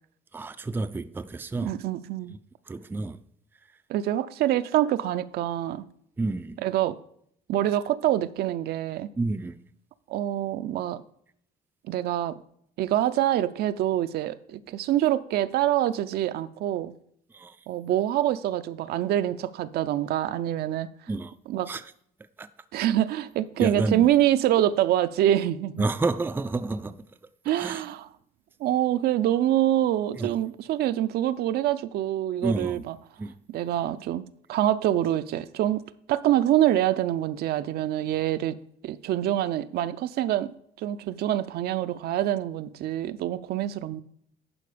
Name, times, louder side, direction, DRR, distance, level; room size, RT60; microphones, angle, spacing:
voice 1, 0.3-1.8 2.7-3.2 6.2-6.6 9.2-9.6 17.3-17.6 21.1-21.3 21.7-21.8 22.4-22.5 23.6-24.1 25.8-27.0 27.6-27.8 30.2-30.3 32.4-32.8 33.2-33.3, right 3 dB, 10° right, 0.4 m, -29 dB
voice 2, 1.6-2.3 3.9-5.8 6.6-7.0 7.5-9.1 10.1-11.0 11.9-12.3 12.8-16.9 17.7-20.9 21.5-21.7 22.7-25.9 27.5-28.1 28.6-33.0 33.5-35.8 36.1-38.6 38.8-40.5 40.8-44.0, right 12 dB, 70° right, 0.5 m, -25 dB
11.0 x 4.5 x 5.0 m
cardioid pair, 110°, 17 cm